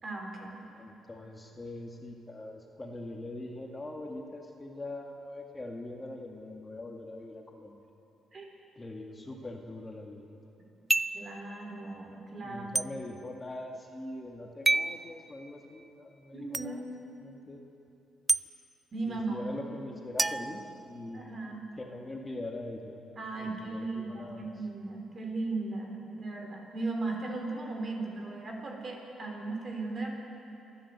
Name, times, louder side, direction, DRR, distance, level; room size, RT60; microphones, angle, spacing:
voice 1, 0.0-0.6 8.3-8.5 11.1-12.7 16.3-16.8 18.9-19.4 21.1-21.6 23.2-30.1, right 3 dB, 40° right, 1 dB, 4.4 m, -37 dB
voice 2, 0.7-7.9 8.8-10.4 12.4-16.9 17.2-17.6 19.1-21.2 21.8-24.6, left 2 dB, 20° left, 1 dB, 2.0 m, -42 dB
sound 1, 10.9-11.3 12.7-12.9 14.6-15.0 16.5-16.7 18.3-18.4 20.2-21.3, right 2 dB, 20° right, 0.4 m, -28 dB
28.0 x 11.5 x 8.2 m, 2.9 s
cardioid pair, 90°, 0 cm